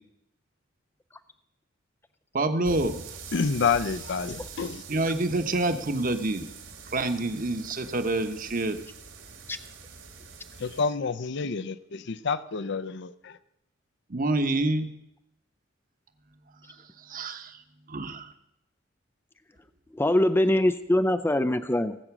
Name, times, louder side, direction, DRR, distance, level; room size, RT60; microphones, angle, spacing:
voice 1, 2.3-2.9 4.9-6.4 6.9-8.8 14.1-14.9 17.1-17.5 17.9-18.3, right 2 dB, 45° right, 1.1 m, -27 dB
sound 1, 2.6-10.8, right 5 dB, 80° right, 3.2 m, -44 dB
voice 2, 3.3-5.2 10.6-13.4, left 5 dB, 60° left, 0.6 m, -29 dB
voice 3, 19.9-22.0, left 1 dB, 10° left, 0.4 m, -23 dB
18.0 x 7.9 x 6.1 m
head